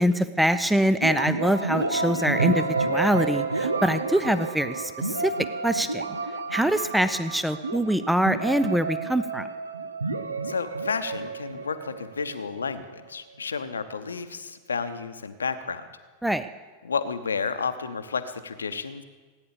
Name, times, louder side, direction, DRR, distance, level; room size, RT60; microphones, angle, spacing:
voice 1, 0.0-5.3 5.6-6.0 6.5-9.5 16.2-16.5, equal, ahead, 12 dB, 0.5 m, -24 dB
sound 1, 1.0-12.7, right 3 dB, 80° right, 1.0 m, -30 dB
voice 2, 10.4-15.9 16.8-19.0, left 5 dB, 75° left, 11 dB, 0.9 m, -31 dB
17.5 x 9.7 x 6.9 m, 1.4 s
figure-of-eight pair, 90°, 0 cm